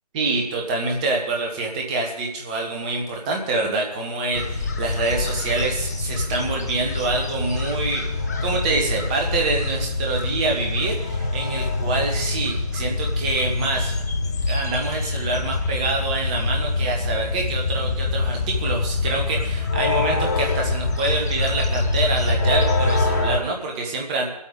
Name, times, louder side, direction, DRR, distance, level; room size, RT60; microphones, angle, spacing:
voice 1, 0.1-14.0 14.5-24.3, right 3 dB, 10° right, 1 dB, 1.0 m, -26 dB
sound 1, 4.3-23.4, left 3 dB, 25° left, 0.8 m, -25 dB
23.0 x 8.4 x 3.8 m, 0.86 s
figure-of-eight pair, 155°, 20 cm